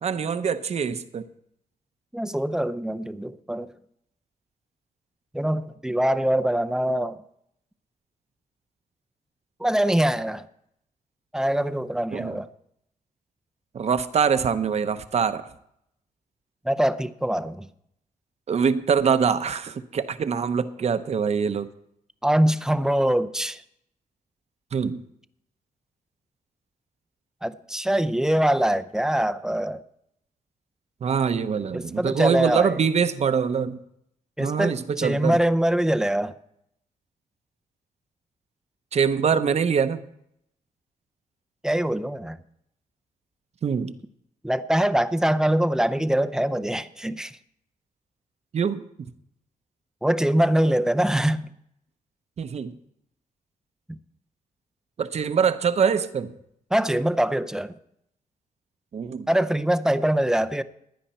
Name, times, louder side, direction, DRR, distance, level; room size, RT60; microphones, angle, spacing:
voice 1, 0.0-1.3 12.1-12.4 13.7-15.5 18.5-21.7 24.7-25.0 31.0-33.8 34.4-35.4 38.9-40.0 43.6-43.9 48.5-49.1 52.4-52.7 55.0-56.3 58.9-59.3, right 6 dB, 50° right, 0.8 m, -24 dB
voice 2, 2.1-3.7 5.3-7.2 9.6-10.4 11.3-12.5 16.7-17.7 22.2-23.6 27.4-29.8 31.7-32.8 34.4-36.3 41.6-42.4 44.4-47.4 50.0-51.5 53.9-54.0 56.7-57.7 59.3-60.6, right 1 dB, 5° right, 0.5 m, -23 dB
16.0 x 10.5 x 4.3 m
wide cardioid pair, 135°, 15 cm